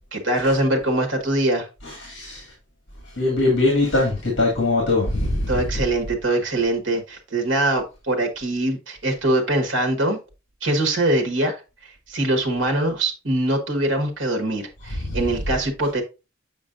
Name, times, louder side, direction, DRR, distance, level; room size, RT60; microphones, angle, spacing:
voice 1, 0.1-1.7 5.5-10.2 10.6-11.6 11.8-16.0, right 1 dB, 65° right, 1.4 m, -23 dB
voice 2, 1.8-2.5 3.1-5.6 15.0-15.2, left 2 dB, 60° left, 2.1 m, -21 dB
7.1 x 5.3 x 2.5 m
head